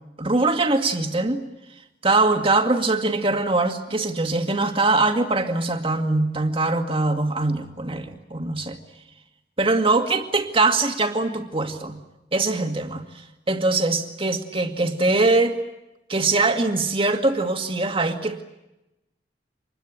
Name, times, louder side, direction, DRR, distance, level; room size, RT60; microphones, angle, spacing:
voice 1, 0.2-1.4 2.0-8.8 9.6-12.0 12.3-13.0 13.5-15.6 16.1-18.4, right 2 dB, 30° right, 5 dB, 2.1 m, -22 dB
26.5 x 21.5 x 8.8 m, 0.96 s
head